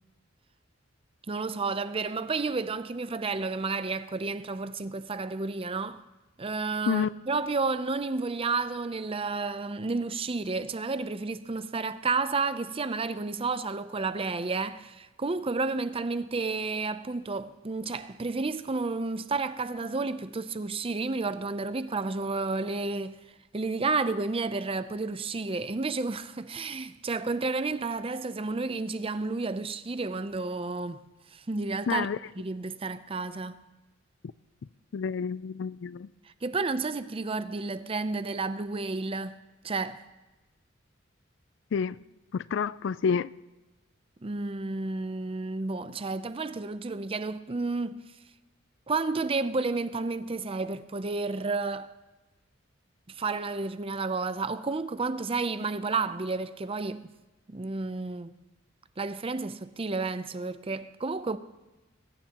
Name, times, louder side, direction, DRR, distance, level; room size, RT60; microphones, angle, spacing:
voice 1, 1.3-6.0 6.4-23.2 23.5-31.0 31.3-32.1 32.4-33.6 36.4-39.4 39.6-40.0 44.2-48.0 48.9-51.9 53.1-57.1 57.5-58.4 59.0-61.4, right 3 dB, 30° right, 0.6 m, -31 dB
voice 2, 31.9-32.2 34.9-36.1 41.7-42.0 42.3-43.3, left 6 dB, 65° left, 0.4 m, -28 dB
21.5 x 17.0 x 3.0 m
head